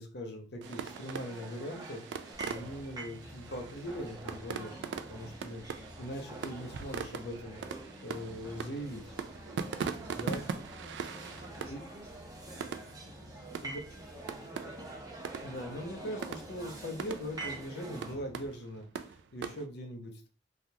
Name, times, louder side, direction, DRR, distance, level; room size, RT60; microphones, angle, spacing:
voice 1, 0.0-5.6 6.0-7.6 8.0-9.1 10.2-10.4 11.7-11.8 13.6-13.8 15.4-20.3, equal, 65° left, 3 dB, 0.7 m, -41 dB
sound 1, 0.6-18.2, right 2 dB, 20° right, 0.7 m, -47 dB
sound 2, 0.6-19.7, right 6 dB, 85° right, 0.3 m, -42 dB
Purr, 2.3-18.5, left 1 dB, 30° left, 0.5 m, -54 dB
voice 2, 9.4-10.4 10.7-14.6, right 1 dB, 65° right, -2 dB, 1.0 m, -55 dB
3.4 x 2.3 x 2.8 m, 0.36 s
head